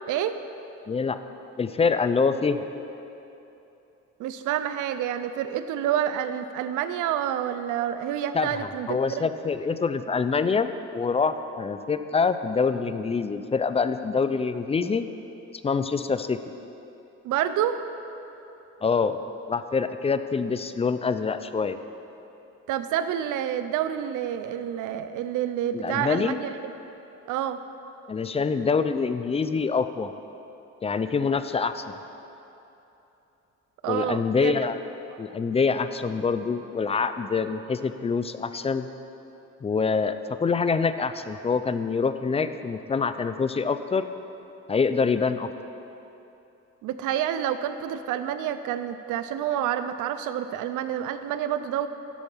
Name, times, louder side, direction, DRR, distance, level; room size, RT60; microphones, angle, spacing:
voice 1, 0.9-1.2 1.6-2.6 8.3-15.1 15.6-16.4 18.8-19.2 19.5-21.8 25.7-26.4 28.1-30.1 30.8-31.8 33.9-34.8 35.2-38.9 39.6-44.1 44.7-45.5, left 5 dB, 20° left, 11 dB, 0.3 m, -25 dB
voice 2, 4.2-9.3 17.2-17.8 22.7-26.5 27.3-27.6 33.8-34.5 46.8-51.9, right 10 dB, 90° right, 11 dB, 0.5 m, -28 dB
13.0 x 4.5 x 5.5 m, 3.0 s
cardioid pair, 90°, 30 cm